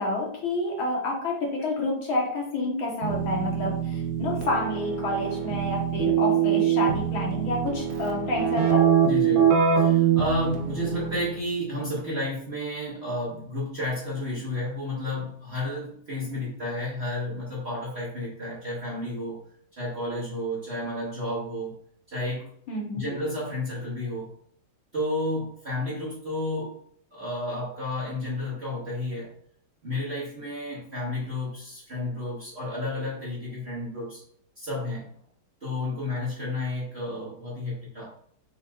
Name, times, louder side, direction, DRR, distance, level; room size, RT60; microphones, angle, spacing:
voice 1, 0.0-8.9 22.7-23.2, left 2 dB, 70° left, -1 dB, 1.9 m, -29 dB
Keyboard (musical), 3.0-11.4, right 8 dB, 80° right, 1.7 m, -24 dB
voice 2, 9.0-19.4 19.7-21.7 22.1-22.5 22.9-24.3 24.9-26.8 27.1-29.3 29.8-34.2 34.6-35.1 35.6-38.0, left 1 dB, 40° right, -7 dB, 1.1 m, -31 dB
5.7 x 3.6 x 2.3 m, 0.62 s
omnidirectional pair, 2.4 m